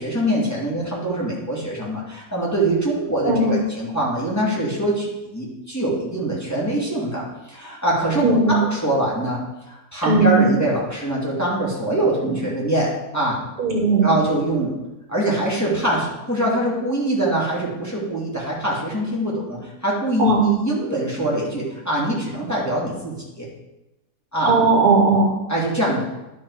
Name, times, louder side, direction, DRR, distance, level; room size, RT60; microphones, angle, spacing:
voice 1, 0.0-9.4 9.7-13.4 14.0-14.7 15.1-23.5 24.3-24.5 25.5-26.0, right 1 dB, 10° left, -6 dB, 2.4 m, -23 dB
voice 2, 3.2-3.6 8.2-8.6 10.0-10.5 13.6-14.1 20.2-20.4 24.4-25.3, right 3 dB, 65° right, 1 dB, 1.6 m, -17 dB
11.0 x 5.5 x 4.8 m, 0.99 s
omnidirectional pair, 1.8 m